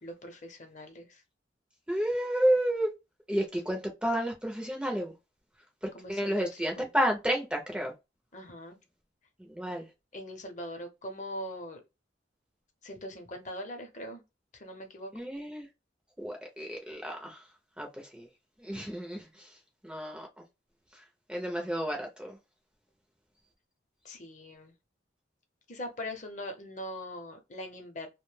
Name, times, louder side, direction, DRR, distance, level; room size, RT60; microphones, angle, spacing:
voice 1, 0.0-1.2 5.9-6.9 8.3-8.8 10.1-11.8 12.8-14.2 14.5-15.1 24.0-24.7 25.7-28.1, left 1 dB, 40° left, 0.7 m, -41 dB
voice 2, 1.9-2.9 3.3-5.1 6.1-7.9 9.5-9.8 15.1-15.7 16.2-17.4 17.8-17.9 18.1-18.3 18.6-19.2 19.8-20.3 21.3-22.3, equal, 5° right, 0.5 m, -30 dB
2.6 x 2.1 x 3.1 m
head